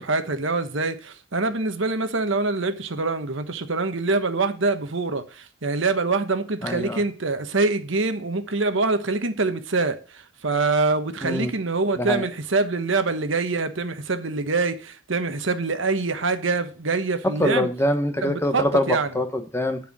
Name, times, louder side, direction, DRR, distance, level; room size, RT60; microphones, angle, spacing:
voice 1, 0.0-17.7 18.2-19.1, right 3 dB, 65° right, 1.1 m, -25 dB
voice 2, 6.6-7.0 11.2-11.5 12.0-12.3 17.4-19.8, left 1 dB, 10° left, 1.0 m, -24 dB
11.0 x 4.8 x 7.3 m
head